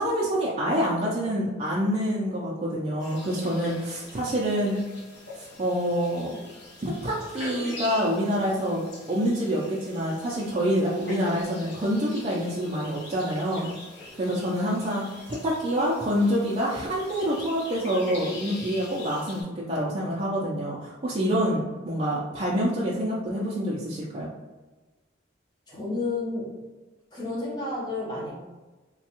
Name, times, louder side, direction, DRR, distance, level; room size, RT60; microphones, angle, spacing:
voice 1, 0.0-4.8 5.4-6.4 6.8-8.8 9.1-13.7 14.1-24.3, equal, 30° right, -6 dB, 0.4 m, -27 dB
sound 1, 3.0-19.4, left 2 dB, 60° left, 0.6 m, -43 dB
voice 2, 25.7-26.5 27.1-28.3, left 2 dB, 20° left, -6 dB, 0.9 m, -31 dB
3.2 x 2.2 x 2.9 m, 1.2 s
head